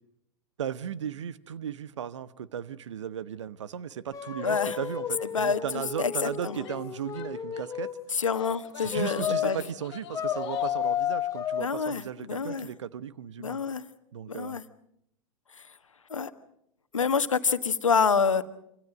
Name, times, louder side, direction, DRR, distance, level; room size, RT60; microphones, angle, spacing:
voice 1, 0.6-8.0 8.8-13.6 14.1-14.6, right 9 dB, 65° right, 1.1 m, -36 dB
sound 1, 4.1-8.0 8.9-9.6 10.1-11.6, left 9 dB, 20° left, 1.7 m, -32 dB
voice 2, 4.4-4.8 5.3-5.6 6.0-6.6 8.1-9.6 11.6-12.7 13.4-13.8 14.3-14.6 15.6-15.7 16.1-16.3 16.9-18.4, left 5 dB, 75° left, 1.5 m, -27 dB
Female speech woman speaking / Yell, 6.6-7.8 8.3-10.9, left 13 dB, 50° left, 1.6 m, -46 dB
27.5 x 25.5 x 5.1 m
figure-of-eight pair, 95°, 17 cm